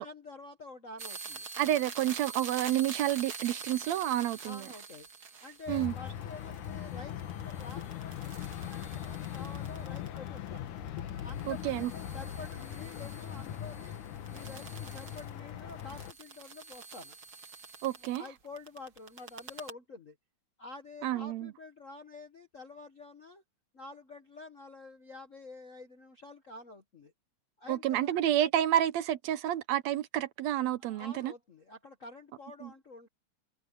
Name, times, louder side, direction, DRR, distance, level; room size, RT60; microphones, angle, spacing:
voice 1, 0.0-1.5 4.4-5.1 5.4-10.7 11.2-14.0 14.3-17.2 18.0-20.2 20.6-23.4 23.7-27.1 27.6-28.2 30.8-33.1, left 3 dB, 50° left, 0.9 m, -48 dB
sound 1, 1.0-10.6 10.9-18.3 18.6-19.7, right 5 dB, 40° right, 1.6 m, -46 dB
voice 2, 1.6-4.7 5.7-5.9 11.5-11.9 17.8-18.2 21.0-21.5 27.7-31.3 32.6-32.7, right 12 dB, 75° right, 1.8 m, -29 dB
sound 2, 5.7-16.1, left 10 dB, 90° left, 2.8 m, -40 dB
omnidirectional pair, 3.4 m